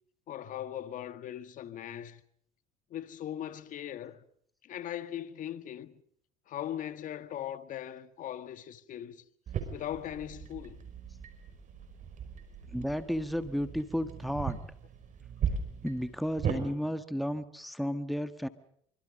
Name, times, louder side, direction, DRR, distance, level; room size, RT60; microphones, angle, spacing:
voice 1, 0.3-2.2 2.9-4.2 4.6-6.0 6.5-9.2 9.7-10.8, left 11 dB, 55° left, 1.6 m, -39 dB
sound 1, 9.5-16.6, right 7 dB, 50° right, 5.4 m, -38 dB
voice 2, 12.7-14.6 15.8-18.5, equal, ahead, 1.5 m, -33 dB
25.5 x 25.0 x 5.3 m
supercardioid pair, 90°, 16 cm